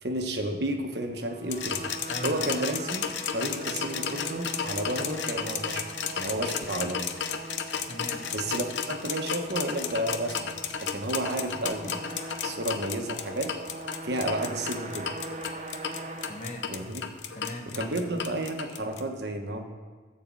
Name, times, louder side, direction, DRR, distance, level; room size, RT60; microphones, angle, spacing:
voice 1, 0.0-1.9 2.2-5.8 6.1-7.1 8.3-10.5 10.8-13.5 14.0-15.1 16.7-17.0 17.7-19.6, right 1 dB, 60° right, 4 dB, 1.2 m, -32 dB
sound 1, 1.1-17.4, right 2 dB, 40° right, 0.8 m, -41 dB
sound 2, 1.5-19.0, left 7 dB, 70° left, 0.8 m, -33 dB
voice 2, 2.1-2.6 7.8-8.3 16.3-16.7 17.3-18.0, left 1 dB, 40° left, 3 dB, 1.2 m, -39 dB
13.5 x 4.7 x 7.6 m, 1.4 s
head